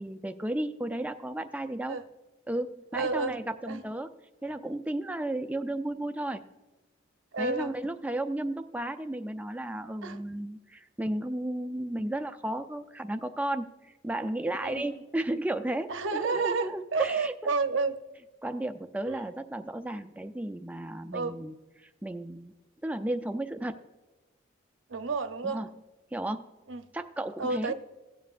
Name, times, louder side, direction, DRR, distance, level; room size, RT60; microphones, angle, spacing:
voice 1, 0.0-2.0 2.5-4.1 4.4-6.4 7.4-17.5 18.4-21.5 21.8-22.5 22.8-23.8 25.4-25.7 26.1-26.5 26.9-27.7, right 1 dB, 10° right, 7 dB, 0.4 m, -34 dB
voice 2, 2.9-3.3 3.7-3.8 4.4-4.5 7.3-7.7 10.0-10.2 14.6-14.9 15.9-17.9 19.1-19.2 21.1-21.3 24.9-25.6 26.7-26.8 27.4-27.7, right 4 dB, 80° right, 8 dB, 0.8 m, -30 dB
17.0 x 7.4 x 2.5 m, 1.2 s
head